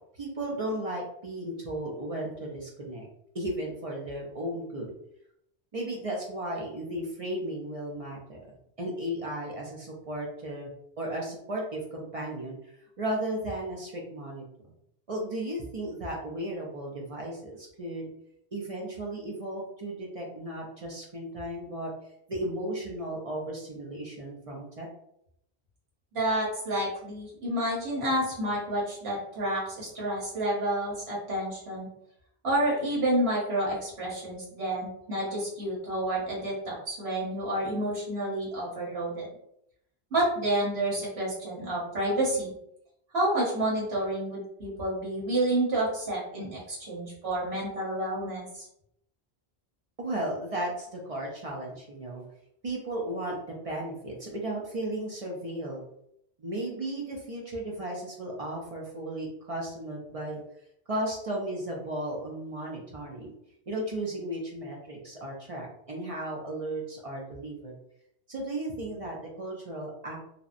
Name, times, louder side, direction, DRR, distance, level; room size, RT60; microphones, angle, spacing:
voice 1, 0.1-3.1 3.3-4.9 5.7-8.4 8.8-10.7 11.0-14.4 15.1-18.1 18.5-21.9 22.3-24.9 50.0-52.2 52.6-55.8 56.4-60.4 60.9-63.3 63.7-67.7 68.3-70.2, right 1 dB, 50° right, -2 dB, 0.4 m, -35 dB
voice 2, 26.1-31.9 32.4-39.3 40.1-42.5 43.1-48.6, right 1 dB, 75° right, -5 dB, 1.3 m, -29 dB
2.7 x 2.0 x 2.4 m, 0.75 s
omnidirectional pair, 1.1 m